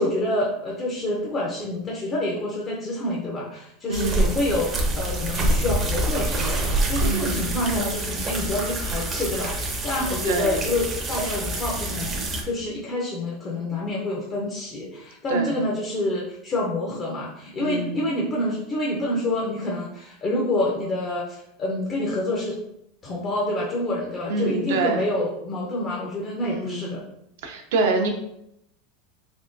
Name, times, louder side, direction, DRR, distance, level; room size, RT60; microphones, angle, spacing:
voice 1, 0.0-6.6 6.9-22.6 23.0-27.0, left 1 dB, 25° left, -3 dB, 0.5 m, -27 dB
sound 1, 3.9-12.4, right 1 dB, 20° right, 0.6 m, -26 dB
voice 2, 3.9-4.4 7.0-7.4 10.3-10.6 15.3-15.6 17.6-18.0 24.3-25.0 26.4-27.0 27.4-28.1, right 3 dB, 75° right, 4 dB, 0.6 m, -26 dB
3.5 x 3.1 x 2.6 m, 0.77 s
supercardioid pair, 160°, 0 cm